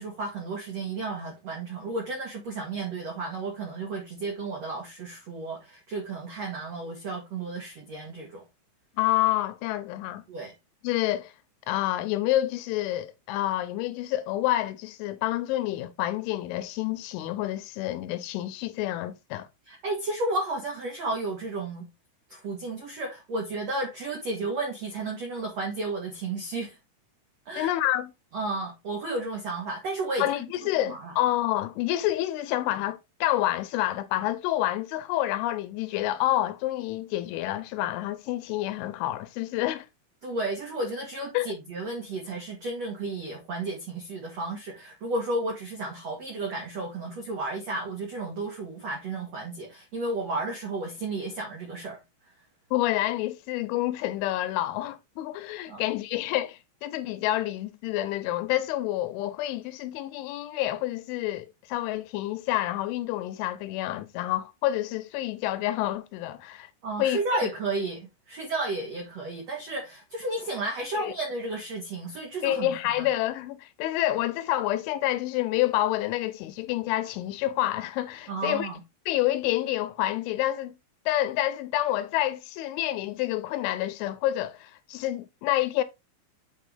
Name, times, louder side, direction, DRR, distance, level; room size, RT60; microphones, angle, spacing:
voice 1, 0.0-8.4 10.3-10.5 19.7-21.9 22.3-26.8 27.4-27.7 28.3-30.4 30.8-31.1 40.2-52.0 55.7-55.8 66.8-73.1 78.3-78.8, right 2 dB, 80° right, 1.5 m, -33 dB
voice 2, 9.0-10.2 10.8-11.3 11.7-19.5 27.6-28.1 30.2-39.9 41.3-41.6 52.7-66.7 67.0-67.4 70.9-71.1 72.4-78.7 79.1-80.7 81.1-85.8, left 14 dB, 85° left, 3.0 m, -28 dB
9.1 x 4.3 x 3.4 m
omnidirectional pair, 5.6 m